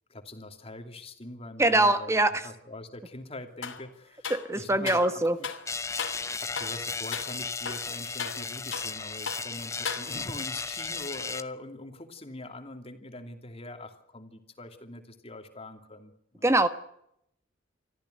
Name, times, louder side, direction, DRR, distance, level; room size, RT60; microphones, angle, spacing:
voice 1, 0.1-5.5 6.4-16.5, left 2 dB, 30° left, 2.8 m, -43 dB
voice 2, 1.6-2.5 4.3-5.4 16.4-16.7, right 2 dB, 15° right, 1.3 m, -23 dB
sound 1, 3.6-3.8 4.2-5.1 5.4-5.7 6.0-6.3 6.6-6.8 7.1-7.3 7.6-9.0 9.3-9.5 9.8-10.4, left 6 dB, 80° left, 2.7 m, -36 dB
sound 2, 5.7-11.4, left 4 dB, 15° left, 0.8 m, -35 dB
25.0 x 14.5 x 9.4 m
head